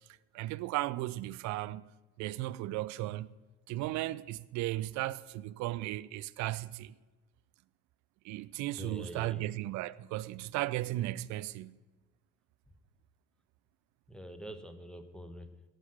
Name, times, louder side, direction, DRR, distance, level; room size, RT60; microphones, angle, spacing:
voice 1, 0.3-1.9 2.2-3.3 3.7-6.9 8.2-11.8, right 16 dB, 55° right, 0.5 m, -35 dB
voice 2, 8.8-9.5 14.1-15.6, equal, ahead, 1.4 m, -45 dB
11.5 x 6.0 x 8.4 m
figure-of-eight pair, 55°, 35 cm